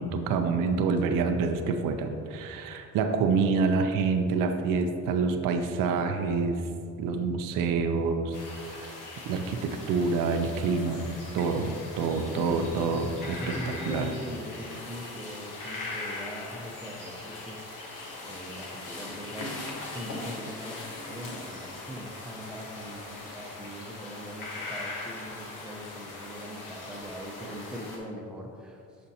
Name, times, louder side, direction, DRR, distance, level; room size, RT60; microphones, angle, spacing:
voice 1, 0.0-6.6 7.0-8.3 8.7-8.9 9.3-11.1 11.3-13.5 13.9-14.1, right 4 dB, 85° right, 6 dB, 0.5 m, -27 dB
sound 1, 8.3-28.0, left 2 dB, 70° left, 1.1 m, -40 dB
voice 2, 12.1-12.7 13.4-17.9 18.2-19.5 19.9-28.9, equal, ahead, -1 dB, 0.9 m, -41 dB
7.0 x 5.1 x 2.8 m, 2.4 s
cardioid pair, 85°, 32 cm